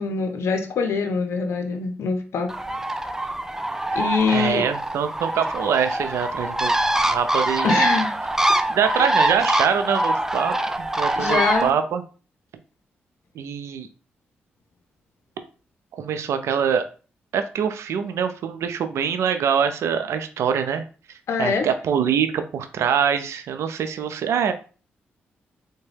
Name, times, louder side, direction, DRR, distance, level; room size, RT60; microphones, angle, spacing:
voice 1, 0.0-2.5 3.9-4.7 7.6-8.1 11.2-11.7 21.3-21.7, left 4 dB, 70° left, 5 dB, 0.6 m, -24 dB
Bird, 2.5-11.7, right 1 dB, 10° right, 0.4 m, -24 dB
voice 2, 4.3-7.7 8.7-12.0 13.4-13.9 15.9-16.8 17.3-20.8 21.4-24.5, right 7 dB, 75° right, 8 dB, 0.4 m, -24 dB
3.5 x 2.2 x 3.3 m, 0.36 s
supercardioid pair, 45°, 5 cm